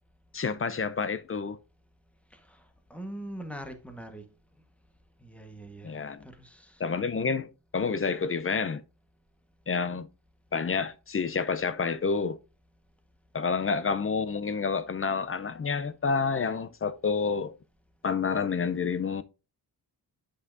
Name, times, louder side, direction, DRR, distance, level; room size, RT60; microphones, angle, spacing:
voice 1, 0.3-1.6 5.8-6.3 6.8-8.8 9.7-10.1 10.5-12.4 13.3-17.5 18.0-19.2, left 5 dB, 30° left, 0.5 m, -29 dB
voice 2, 2.3-4.2 5.2-6.8, right 1 dB, 5° left, 1.2 m, -43 dB
8.4 x 5.5 x 2.5 m
wide cardioid pair, 105°, 44 cm